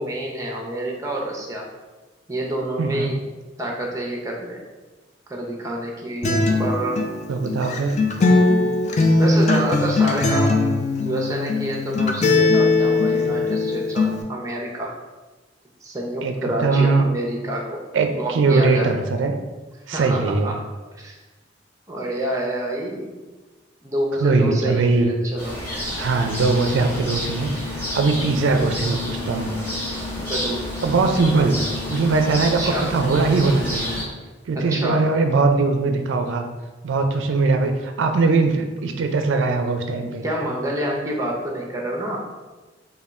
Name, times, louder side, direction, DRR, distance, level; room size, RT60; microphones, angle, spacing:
voice 1, 0.0-1.7 2.3-3.2 3.6-4.6 5.3-7.0 9.2-10.7 11.0-15.0 15.8-17.8 18.1-18.9 19.9-20.6 20.9-21.2 21.9-23.1 23.8-25.5 30.2-30.7 32.6-32.9 34.5-35.1 40.2-42.2, right 1 dB, 15° right, -1 dB, 0.6 m, -28 dB
voice 2, 2.8-3.1 6.3-6.5 7.3-8.0 16.2-16.3 16.6-17.1 17.9-19.3 19.9-20.5 24.2-25.1 26.0-29.5 30.8-31.6 31.9-33.9 34.5-36.4 36.8-40.2, right 3 dB, 85° right, 5 dB, 0.4 m, -20 dB
Acoustic guitar, 6.2-14.2, left 3 dB, 40° left, 0.4 m, -20 dB
sound 1, 25.4-34.0, left 1 dB, 10° left, 0.8 m, -30 dB
3.6 x 2.2 x 4.2 m, 1.2 s
head